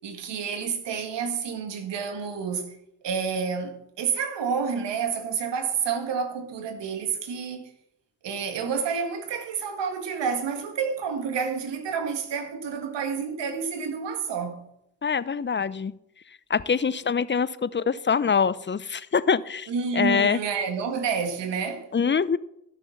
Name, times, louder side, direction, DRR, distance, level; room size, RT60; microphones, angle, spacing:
voice 1, 0.0-2.8 3.0-7.7 8.2-14.7 19.7-21.9, right 6 dB, 75° right, 2.0 m, -29 dB
voice 2, 15.0-15.9 16.5-20.4 21.9-22.4, left 6 dB, 25° left, 0.7 m, -24 dB
13.0 x 6.2 x 7.0 m
supercardioid pair, 50°, 43 cm